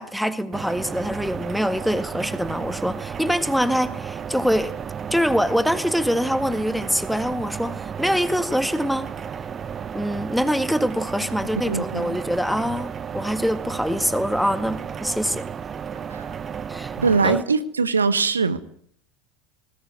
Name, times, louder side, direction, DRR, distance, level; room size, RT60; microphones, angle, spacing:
voice 1, 0.0-4.7 5.1-9.1 9.9-15.5 16.7-16.9 17.2-17.4, equal, ahead, 12 dB, 1.7 m, -24 dB
sound 1, 0.5-17.4, right 7 dB, 25° right, 1.0 m, -33 dB
voice 2, 11.6-12.1 16.1-16.2 17.0-18.6, right 4 dB, 80° right, 14 dB, 1.2 m, -21 dB
20.0 x 18.5 x 9.5 m, 0.62 s
figure-of-eight pair, 75°, 0 cm